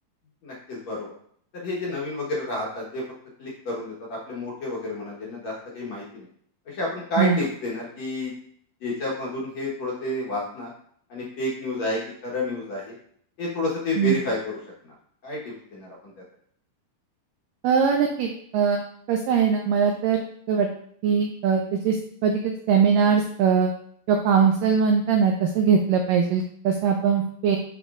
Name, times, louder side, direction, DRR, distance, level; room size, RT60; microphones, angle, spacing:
voice 1, 0.4-1.1 1.5-3.0 3.4-6.3 6.7-8.3 8.8-10.7 11.1-12.9 13.4-14.6 15.2-16.1, left 1 dB, 60° left, -5 dB, 2.0 m, -30 dB
voice 2, 17.6-18.8 19.1-20.7 21.0-22.0 22.2-23.7 24.1-27.6, right 6 dB, 85° right, 3 dB, 1.9 m, -21 dB
11.0 x 4.4 x 2.5 m, 0.63 s
omnidirectional pair, 4.6 m